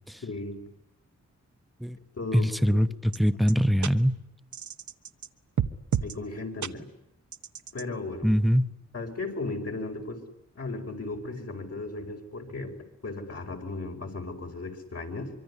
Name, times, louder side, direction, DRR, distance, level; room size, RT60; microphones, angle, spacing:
voice 1, 0.2-0.7 2.2-2.8 6.0-6.9 7.7-8.3 8.9-10.2 10.6-12.8 13.0-15.3, left 3 dB, 55° left, 2 dB, 5.3 m, -36 dB
voice 2, 2.3-4.2 8.2-8.7, equal, ahead, 12 dB, 1.0 m, -23 dB
sound 1, 3.1-3.2 3.5-3.6 3.8-3.9 4.5-5.3 5.6-6.2 6.6-6.7 7.3-7.8, right 8 dB, 80° right, 1.2 m, -30 dB
25.0 x 24.0 x 9.8 m, 0.85 s
wide cardioid pair, 100°, 29 cm